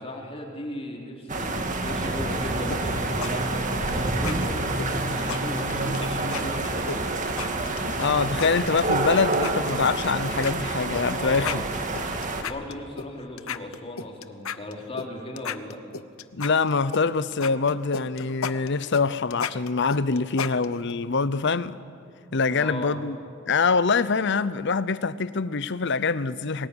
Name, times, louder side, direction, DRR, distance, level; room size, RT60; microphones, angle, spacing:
voice 1, 0.0-7.0 11.1-11.7 12.4-15.8 22.5-23.0, left 1 dB, 30° left, 3.5 m, -36 dB
sound 1, 1.3-12.4, right 2 dB, 40° right, 2.0 m, -28 dB
sound 2, 2.7-3.3 3.6-3.9 4.2-4.4 4.8-6.0 6.3-6.4 6.9-8.1 8.4-9.0 9.3-10.1 10.4-10.5 10.9-11.1 11.3-13.1 13.4-15.1 15.4-17.0 17.3-20.9, left 6 dB, 90° left, 0.9 m, -33 dB
voice 2, 8.0-11.6 16.3-21.8 22.3-23.2 23.5-26.7, left 4 dB, 60° left, 0.8 m, -24 dB
23.0 x 19.0 x 9.9 m
head